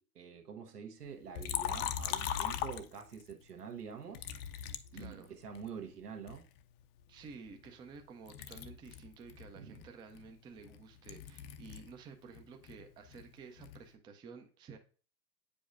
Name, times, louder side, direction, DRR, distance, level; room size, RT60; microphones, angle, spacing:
voice 1, 0.0-4.3 4.9-6.5 9.5-9.8, right 6 dB, 85° right, 1.2 m, -46 dB
Liquid, 1.4-3.3 4.1-5.7 6.3-8.0 8.3-12.0 12.3-13.9, left 10 dB, 40° left, 0.5 m, -40 dB
voice 2, 4.9-5.3 7.1-14.8, right 5 dB, 10° right, 0.4 m, -52 dB
8.4 x 5.1 x 2.5 m
hypercardioid pair, 100°, 45 cm